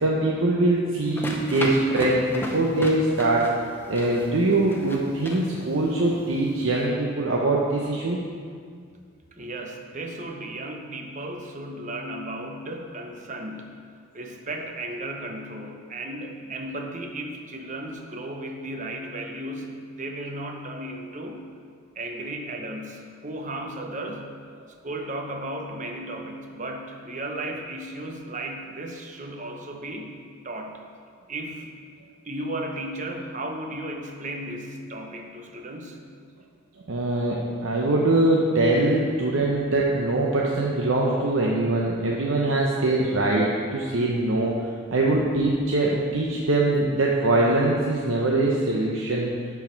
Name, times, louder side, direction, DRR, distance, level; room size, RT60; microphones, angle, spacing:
voice 1, 0.0-3.5 3.9-8.2 36.9-44.6 44.9-49.3, right 2 dB, 75° right, -3 dB, 0.8 m, -23 dB
sound 1, 1.0-6.9, left 1 dB, 10° left, 0.7 m, -36 dB
voice 2, 9.3-21.5 22.0-24.5 24.8-30.8 31.3-31.7 32.2-36.0, right 1 dB, 35° right, 3 dB, 0.8 m, -35 dB
11.5 x 4.7 x 4.5 m, 2.1 s
head